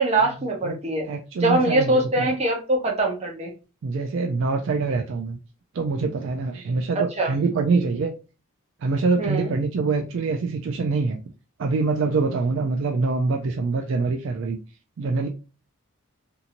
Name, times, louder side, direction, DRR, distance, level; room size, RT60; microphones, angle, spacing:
voice 1, 0.0-1.1 1.4-3.5 7.2-7.3 9.2-9.5, right 2 dB, 30° right, 0.7 m, -22 dB
voice 2, 1.1-2.3 3.8-5.4 5.7-8.1 8.8-11.2 11.6-14.6 15.0-15.3, right 4 dB, 60° right, 0.3 m, -24 dB
2.8 x 2.6 x 2.5 m
head